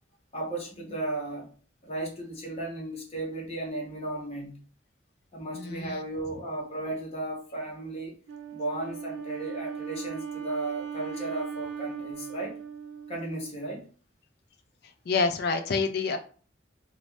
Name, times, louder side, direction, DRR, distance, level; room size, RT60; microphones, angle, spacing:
voice 1, 0.3-1.5 1.8-4.5 5.3-8.1 8.5-12.6 13.1-13.8, right 2 dB, 35° left, -1 dB, 0.9 m, -35 dB
voice 2, 5.5-6.0 15.1-16.2, left 4 dB, 55° left, 7 dB, 0.4 m, -27 dB
Wind instrument woodwind instrument, 8.3-13.7, right 7 dB, 70° right, 0.5 m, -38 dB
2.5 x 2.0 x 3.2 m, 0.40 s
head